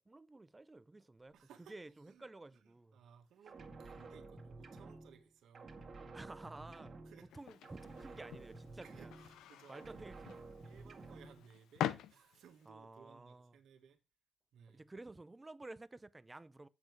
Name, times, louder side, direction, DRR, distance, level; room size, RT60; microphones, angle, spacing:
voice 1, 0.1-1.4 1.7-3.0 6.1-7.0 7.3-9.1 9.7-10.3 12.7-13.6 14.7-16.7, right 2 dB, 15° right, 0.6 m, -52 dB
voice 2, 1.3-5.8 7.0-7.3 8.8-10.1 10.6-14.0 14.5-14.8, right 8 dB, 75° right, 1.7 m, -62 dB
sound 1, 3.5-5.3 5.5-7.4 7.6-9.5 9.7-11.4, right 3 dB, 40° right, 2.0 m, -52 dB
sound 2, 7.3-12.7, left 11 dB, 80° left, 0.6 m, -45 dB
7.6 x 6.4 x 4.7 m
cardioid pair, 90°, 0 cm